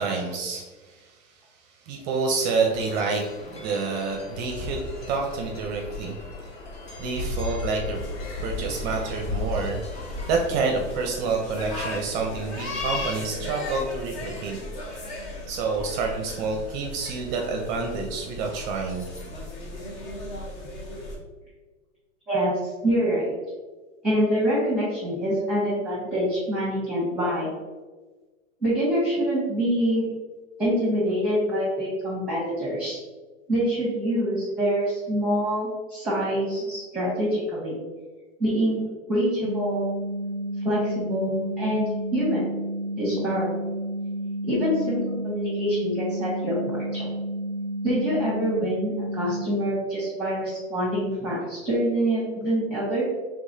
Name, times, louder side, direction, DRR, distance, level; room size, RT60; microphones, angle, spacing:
voice 1, 0.0-1.3 1.7-6.2 7.0-8.0 8.4-9.8 10.3-14.6 15.5-19.1, right 4 dB, 35° right, 2 dB, 0.6 m, -28 dB
sound 1, 2.7-10.4, left 2 dB, 15° left, 0.5 m, -35 dB
sound 2, 7.9-21.2, left 2 dB, 40° left, 1.1 m, -36 dB
voice 2, 22.8-23.3 24.0-27.5 28.6-30.0 30.6-33.0 33.5-37.8 38.4-38.8 39.1-39.8 40.6-42.4 43.0-43.5 44.5-47.1 47.8-53.0, equal, 5° right, -7 dB, 1.2 m, -25 dB
sound 3, 39.4-49.4, right 1 dB, 60° left, 1.3 m, -31 dB
4.7 x 3.6 x 2.7 m, 1.3 s
hypercardioid pair, 125°, 38 cm